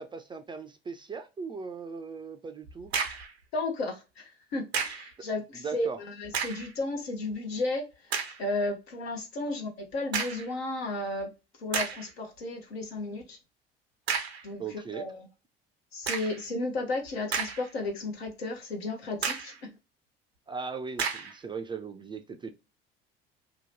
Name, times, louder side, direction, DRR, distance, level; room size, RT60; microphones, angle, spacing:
voice 1, 0.0-2.9 5.5-6.0 14.6-15.1 20.5-22.5, right 5 dB, 15° right, 0.3 m, -38 dB
sound 1, 2.7-3.3 4.7-5.1 6.2-6.7 7.3-7.4 8.1-8.4 10.1-10.5 11.2-11.3 11.7-12.1 14.1-14.5 16.0-16.4 17.1-17.9 18.3-18.4 19.2-19.6 21.0-21.4, right 6 dB, 90° right, 0.5 m, -32 dB
voice 2, 3.5-11.3 11.6-13.4 14.4-15.2 15.9-19.5, left 2 dB, 80° left, 0.8 m, -33 dB
2.8 x 2.1 x 2.9 m
figure-of-eight pair, 60°, 31 cm